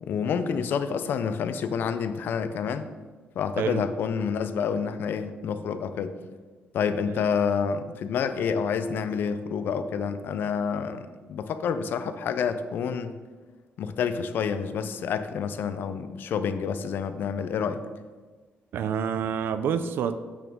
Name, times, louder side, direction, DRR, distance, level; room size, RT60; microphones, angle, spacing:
voice 1, 0.0-2.9 3.4-6.1 6.7-13.1 13.8-17.8, left 6 dB, 60° left, 10 dB, 0.5 m, -28 dB
voice 2, 18.7-20.1, right 7 dB, 70° right, 12 dB, 0.4 m, -27 dB
8.3 x 5.9 x 3.6 m, 1.4 s
cardioid pair, 160°, 4 cm